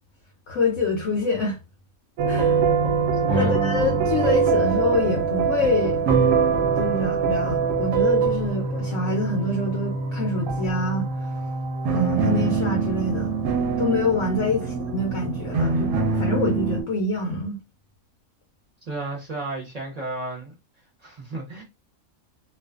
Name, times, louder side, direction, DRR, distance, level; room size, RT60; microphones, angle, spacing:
voice 1, 0.5-1.6 2.3-2.6 3.4-6.0 6.8-11.1 11.9-13.3 13.8-17.6, left 3 dB, 70° left, 0.9 m, -26 dB
sound 1, 2.2-16.8, right 5 dB, 70° right, 0.9 m, -23 dB
voice 2, 3.2-3.6 14.4-14.7 18.9-20.5 21.0-21.6, right 2 dB, 40° right, 0.6 m, -33 dB
2.4 x 2.3 x 2.3 m
omnidirectional pair, 1.5 m